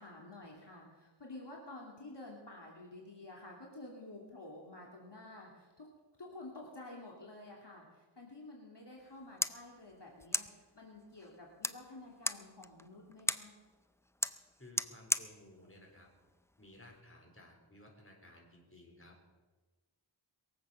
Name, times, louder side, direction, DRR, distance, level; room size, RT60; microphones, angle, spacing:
voice 1, 0.0-5.9 6.2-10.5 10.7-13.5, left 2 dB, 55° left, -2 dB, 2.8 m, -51 dB
sound 1, 9.0-17.0, left 1 dB, 5° left, 0.5 m, -40 dB
voice 2, 14.6-16.1 16.6-19.1, left 1 dB, 25° left, 0 dB, 3.9 m, -57 dB
22.5 x 7.8 x 6.9 m, 1.3 s
wide cardioid pair, 55°, 49 cm